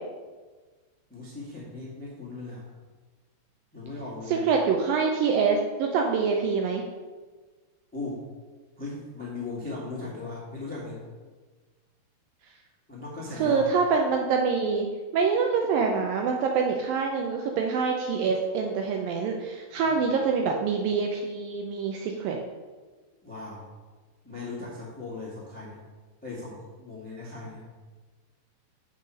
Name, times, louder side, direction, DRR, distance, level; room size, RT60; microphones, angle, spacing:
voice 1, 1.1-2.6 3.7-4.4 7.9-8.2 8.8-11.0 12.9-13.7 19.7-20.0 23.2-23.7 24.2-25.8 26.2-27.6, left 3 dB, 5° left, -5 dB, 0.8 m, -38 dB
voice 2, 4.3-6.8 13.4-14.9 15.1-22.4, right 5 dB, 80° right, 2 dB, 2.1 m, -25 dB
6.5 x 5.5 x 6.4 m, 1.4 s
omnidirectional pair, 4.6 m